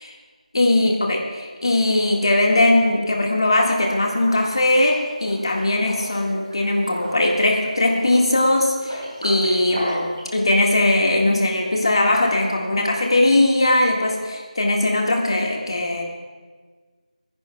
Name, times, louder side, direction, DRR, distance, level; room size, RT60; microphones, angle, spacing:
voice 1, 0.5-16.0, left 1 dB, 45° left, 0 dB, 1.8 m, -20 dB
Liquid, 4.1-10.3, equal, 30° right, 4.7 m, -36 dB
28.0 x 10.5 x 2.3 m, 1.5 s
figure-of-eight pair, 175°, 4 cm